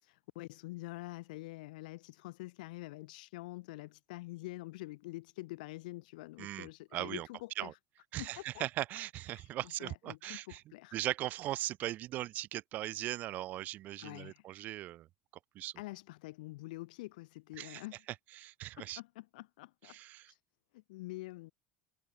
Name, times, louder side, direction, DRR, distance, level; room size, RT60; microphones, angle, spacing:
voice 1, 0.0-7.8 8.2-8.6 9.3-11.0 14.0-14.5 15.8-18.0 18.8-20.0 20.3-20.4 20.7-21.5, left 20 dB, 90° left, 0.7 m, -46 dB
voice 2, 6.4-7.3 7.6-7.7 8.1-10.6 10.9-15.1 15.6-15.7 17.6-17.8 18.4-19.0 19.9-20.3, right 15 dB, 40° right, 0.4 m, -39 dB
cardioid pair, 150°, 4 cm